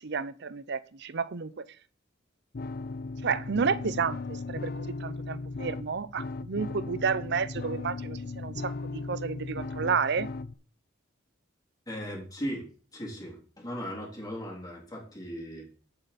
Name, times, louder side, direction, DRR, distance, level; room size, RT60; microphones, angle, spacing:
voice 1, 0.0-1.7 3.2-10.3, right 5 dB, 60° right, 0.7 m, -31 dB
sound 1, 2.5-10.5, left 3 dB, 50° left, 0.5 m, -37 dB
voice 2, 11.9-12.7 12.9-15.7, equal, 20° left, 3.4 m, -37 dB
11.0 x 8.0 x 4.2 m
head